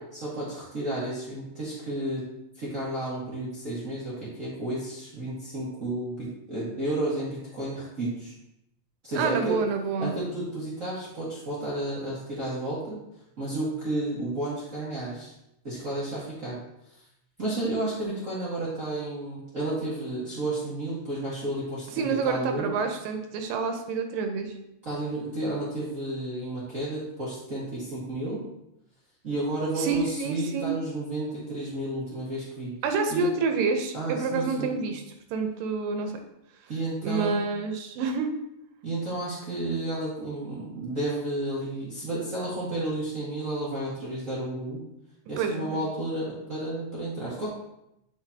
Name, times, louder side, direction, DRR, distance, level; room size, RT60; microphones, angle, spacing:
voice 1, 0.2-2.2 2.5-8.3 9.0-9.6 10.0-13.0 13.4-15.3 15.6-16.6 17.4-22.7 24.8-28.4 29.2-32.7 33.1-33.3 33.9-34.7 36.7-37.4 38.8-44.8 45.3-47.5, right 1 dB, 40° right, -8 dB, 1.1 m, -32 dB
voice 2, 9.1-10.1 22.0-24.5 29.8-30.7 32.8-35.0 35.3-36.2 37.0-38.3 45.4-45.8, right 4 dB, 85° right, 5 dB, 2.4 m, -28 dB
8.1 x 5.8 x 2.8 m, 0.84 s
omnidirectional pair, 3.9 m